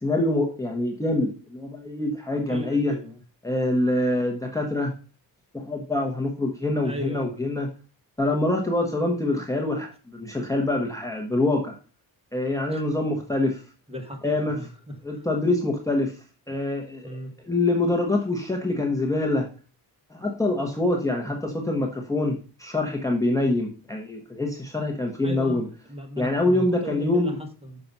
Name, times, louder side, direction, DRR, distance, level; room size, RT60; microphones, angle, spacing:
voice 1, 0.0-2.9 3.4-4.9 5.5-7.7 8.2-11.8 12.3-13.6 14.2-14.6 15.0-16.2 16.5-17.2 17.5-19.5 20.1-25.7 26.2-27.3, left 2 dB, 10° left, 0 dB, 1.1 m, -25 dB
voice 2, 2.5-3.2 6.8-7.3 12.7-12.8 13.1-13.2 13.9-15.3 16.5-16.6 17.0-17.3 25.2-27.8, left 1 dB, 15° right, 3 dB, 1.6 m, -36 dB
6.7 x 6.0 x 5.4 m, 0.36 s
wide cardioid pair, 140°, 38 cm